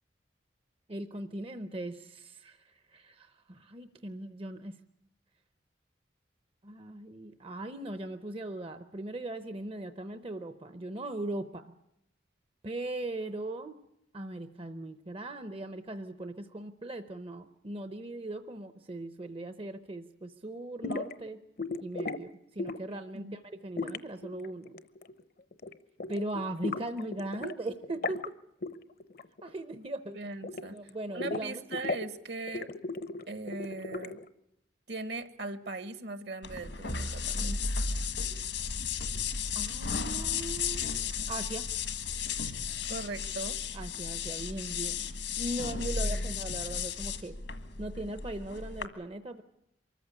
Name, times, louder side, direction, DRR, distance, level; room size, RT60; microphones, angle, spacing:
voice 1, 0.9-4.8 6.6-11.7 12.6-13.8 14.1-21.4 21.8-24.8 26.1-28.2 29.4-30.2 30.7-31.6 39.5-41.0 41.3-41.6 43.7-47.3 47.8-49.4, right 1 dB, 30° right, 10 dB, 0.7 m, -39 dB
sound 1, 20.8-21.1 21.6-22.2 22.6-23.0 23.8-25.2 25.5-25.7 26.0-27.5 27.8-28.3 28.6-28.7 29.0-29.5 29.7-30.9 31.2-32.1 32.5-34.3, left 3 dB, 50° left, 0.8 m, -36 dB
voice 2, 30.1-32.7 33.3-34.2 34.9-37.6 42.9-43.6 46.0-46.4, right 3 dB, 60° right, 12 dB, 1.4 m, -39 dB
sound 2, 36.4-48.9, left 5 dB, 80° left, 1.6 m, -34 dB
24.0 x 14.5 x 9.7 m, 0.81 s
head